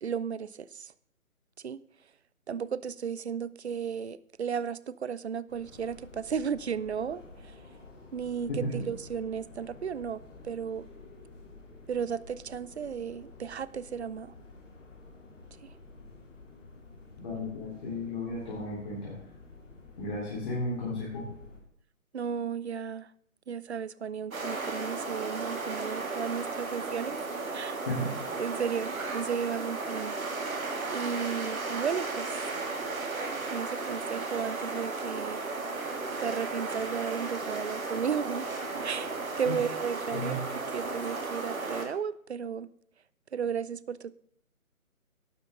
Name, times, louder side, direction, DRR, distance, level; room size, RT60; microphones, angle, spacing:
voice 1, 0.0-0.5 1.6-1.8 2.5-7.2 8.1-8.5 8.9-10.8 11.9-14.3 22.1-23.1 23.5-27.2 27.5-27.8 28.4-30.2 30.9-32.3 33.5-35.4 36.2-38.5 38.8-40.4 40.7-42.7 43.3-44.1, right 7 dB, 50° right, 19 dB, 0.5 m, -34 dB
sound 1, 5.5-21.6, left 3 dB, 55° left, 3.4 m, -51 dB
voice 2, 8.5-8.8 17.2-19.1 20.0-21.3 27.9-28.1 39.4-39.6 40.1-40.5, left 1 dB, 30° left, -7 dB, 3.9 m, -34 dB
sound 2, 24.3-41.9, right 3 dB, 70° right, 2.7 m, -35 dB
12.0 x 10.5 x 3.9 m, 0.69 s
hypercardioid pair, 165°, 43 cm